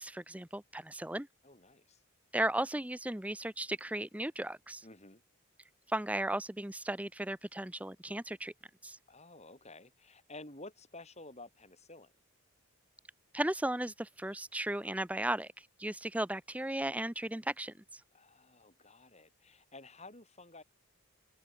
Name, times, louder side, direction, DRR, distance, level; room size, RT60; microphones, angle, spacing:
voice 1, 0.0-1.3 2.3-4.8 5.9-8.5 8.8-9.0 13.3-15.5 15.8-17.7, right 1 dB, 5° right, 0.8 m, -35 dB
voice 2, 1.4-2.0 4.8-5.2 9.1-12.1 18.1-20.6, left 2 dB, 30° left, 7.3 m, -52 dB
head